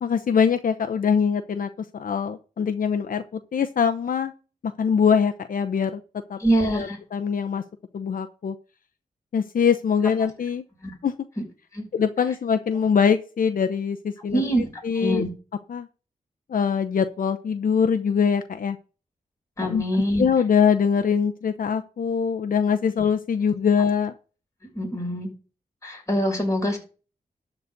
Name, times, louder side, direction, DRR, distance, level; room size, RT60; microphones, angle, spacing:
voice 1, 0.0-4.3 4.8-6.0 6.3-6.4 6.8-7.6 7.9-8.5 9.3-10.6 11.0-11.1 11.9-14.4 14.8-15.2 15.7-15.9 16.5-18.8 19.6-24.1, left 6 dB, 70° left, 8 dB, 0.8 m, -23 dB
voice 2, 6.4-7.0 10.8-10.9 11.7-11.8 14.3-14.7 14.9-15.3 19.6-20.3 24.7-25.3 25.8-26.8, right 1 dB, 20° left, 0 dB, 6.5 m, -24 dB
12.5 x 4.1 x 8.1 m, 0.35 s
cardioid pair, 70°, 15 cm